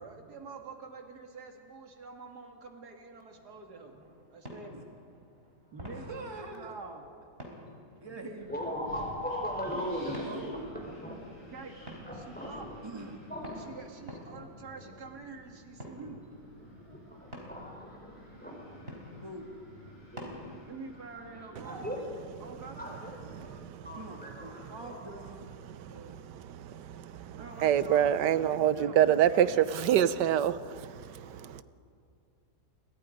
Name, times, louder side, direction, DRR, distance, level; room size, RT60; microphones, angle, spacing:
voice 1, 0.0-3.9 4.3-4.8 5.7-7.0 11.4-11.8 12.2-12.7 13.6-16.2 20.7-22.1 22.4-23.0 27.4-30.1, right 4 dB, 70° right, 3 dB, 2.8 m, -46 dB
sound 1, 3.3-20.8, equal, 35° right, 4.2 m, -50 dB
voice 2, 5.9-6.7 8.0-8.5 10.2-10.7 12.8-13.2 19.2-19.5 23.9-26.2, right 2 dB, 15° right, 2 dB, 2.0 m, -44 dB
Wind, 8.4-23.5, left 1 dB, 45° left, 8.1 m, -53 dB
voice 3, 8.5-11.2 11.8-12.8 13.3-13.7 14.3-14.4 14.7-14.9 16.8-19.2 19.9-20.3 21.2-22.1 22.8-23.2 23.6-25.1 31.2-31.6, equal, 5° left, 0 dB, 4.3 m, -40 dB
voice 4, 23.3-24.8 25.6-31.6, right 10 dB, 85° right, 15 dB, 1.4 m, -28 dB
29.0 x 22.5 x 5.3 m, 2.3 s
omnidirectional pair, 1.8 m